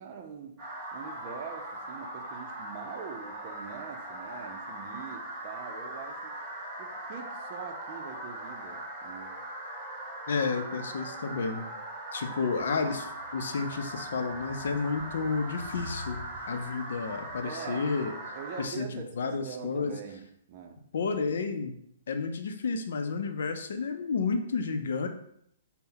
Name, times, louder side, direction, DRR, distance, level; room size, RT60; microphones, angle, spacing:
voice 1, 0.0-6.4 6.8-9.4 17.4-17.9 18.4-20.8, right 6 dB, 40° right, 4 dB, 0.5 m, -43 dB
sound 1, 0.6-18.6, right 1 dB, 20° right, 1.1 m, -40 dB
voice 2, 10.3-11.7 12.1-18.1 18.6-19.9 20.9-21.8 22.1-25.1, left 4 dB, 70° left, 7 dB, 0.5 m, -31 dB
sound 2, 12.6-17.5, equal, 85° right, 0.6 m, -48 dB
4.0 x 2.1 x 3.8 m, 0.72 s
hypercardioid pair, 150°, 0 cm